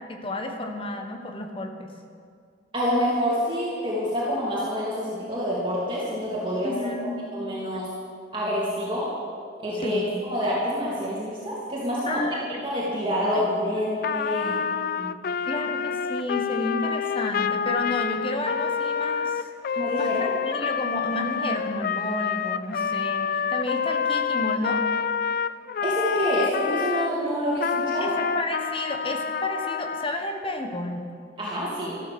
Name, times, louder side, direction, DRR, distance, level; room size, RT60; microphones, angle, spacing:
voice 1, 0.1-1.9 6.6-7.2 9.8-10.1 12.1-12.5 14.4-14.6 15.4-24.9 28.0-31.0, left 1 dB, 30° left, 4 dB, 1.4 m, -31 dB
voice 2, 2.7-6.9 7.3-7.9 8.3-9.1 9.6-12.2 12.6-14.5 15.0-15.1 19.8-20.3 25.8-28.2 31.4-32.0, equal, 25° right, -7 dB, 2.9 m, -27 dB
Trumpet, 14.0-27.1 27.6-30.1, left 6 dB, 50° left, 0.3 m, -27 dB
13.5 x 12.5 x 7.0 m, 2.2 s
head